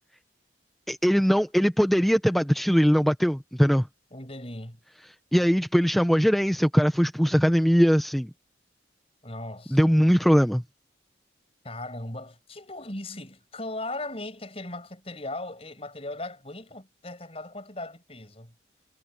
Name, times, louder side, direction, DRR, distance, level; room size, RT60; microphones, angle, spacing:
voice 1, 0.9-3.9 5.3-8.3 9.7-10.6, equal, ahead, 0.5 m, -21 dB
voice 2, 4.1-4.8 9.2-10.0 11.6-18.5, left 2 dB, 30° left, 6.0 m, -38 dB
head